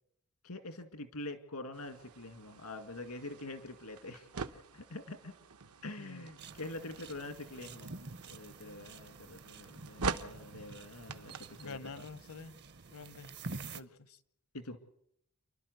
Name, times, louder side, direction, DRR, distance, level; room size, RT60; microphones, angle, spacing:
voice 1, 0.4-4.3 4.7-5.3 5.8-12.1 14.5-14.8, left 2 dB, 85° left, 8 dB, 2.1 m, -45 dB
sound 1, 1.7-11.8, right 4 dB, 80° right, 0.9 m, -45 dB
voice 2, 6.0-6.3 11.6-12.5 12.9-13.4 13.7-14.2, left 4 dB, 70° left, 15 dB, 0.9 m, -47 dB
sound 2, 6.4-13.8, right 3 dB, 50° right, 0.7 m, -48 dB
29.0 x 12.0 x 8.0 m, 0.77 s
head